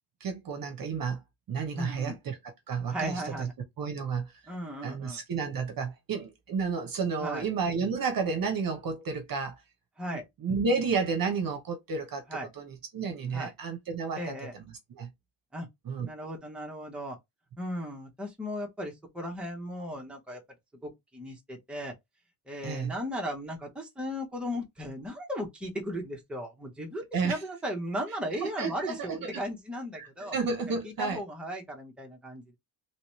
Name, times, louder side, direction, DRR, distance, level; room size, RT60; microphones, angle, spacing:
voice 1, 0.2-1.2 1.5-2.4 2.7-3.5 3.8-4.3 4.8-9.6 10.4-12.2 12.6-15.1 15.8-16.1 22.6-22.9 27.1-27.4 28.4-29.4 30.0-31.2, right 5 dB, 45° right, 0.8 m, -31 dB
voice 2, 1.7-2.1 2.9-3.5 4.5-5.2 7.2-7.4 10.0-10.2 12.3-12.5 13.3-13.5 14.2-14.5 15.5-15.7 16.1-17.2 17.6-20.4 20.8-21.9 22.5-30.3 30.8-32.6, equal, ahead, 0.8 m, -36 dB
3.1 x 3.0 x 3.0 m
cardioid pair, 145°, 47 cm